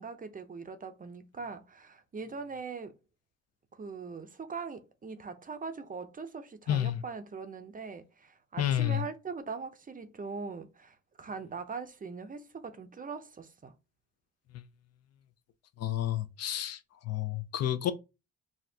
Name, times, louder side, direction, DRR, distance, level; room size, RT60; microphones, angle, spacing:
voice 1, 0.0-3.0 3.8-13.7, right 4 dB, 30° right, 0.6 m, -41 dB
voice 2, 6.7-7.0 8.6-9.0 14.5-14.6 15.8-16.8 17.1-17.9, left 12 dB, 55° left, 0.5 m, -30 dB
4.2 x 2.4 x 2.7 m
cardioid pair, 90°, 30 cm